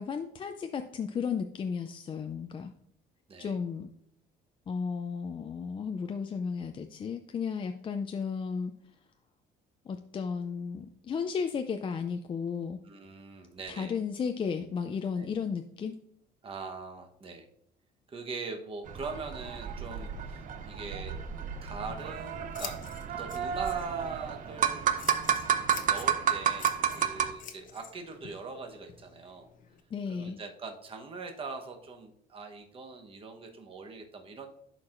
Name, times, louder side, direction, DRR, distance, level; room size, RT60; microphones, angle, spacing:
voice 1, 0.0-2.7 3.4-3.9 4.7-8.7 9.9-12.8 13.7-15.9 29.9-30.4, left 6 dB, 30° left, 7 dB, 0.4 m, -34 dB
voice 2, 12.8-14.0 15.2-15.3 16.4-17.5 18.1-21.1 21.6-24.9 25.7-29.5 30.1-34.5, right 4 dB, 35° right, 3 dB, 1.1 m, -42 dB
sound 1, 18.9-27.3, right 8 dB, 50° right, 0.7 m, -31 dB
Scissors, 21.7-29.8, left 8 dB, 55° left, 0.8 m, -48 dB
11.5 x 4.5 x 2.5 m, 0.70 s
cardioid pair, 110°, 17 cm